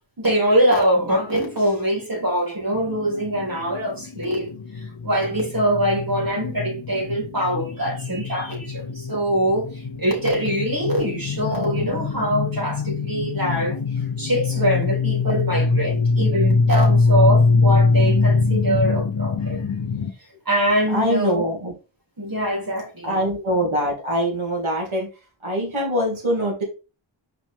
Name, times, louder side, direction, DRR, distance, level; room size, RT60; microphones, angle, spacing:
voice 1, 0.2-19.7 20.5-21.4 22.2-23.2, equal, 45° right, 3.7 m, -23 dB
sound 1, 2.7-20.1, left 4 dB, 65° left, 0.9 m, -23 dB
voice 2, 20.9-21.7 23.0-25.1 25.4-26.6, equal, 80° right, 2.8 m, -23 dB
6.2 x 5.0 x 3.7 m
wide cardioid pair, 70°, 48 cm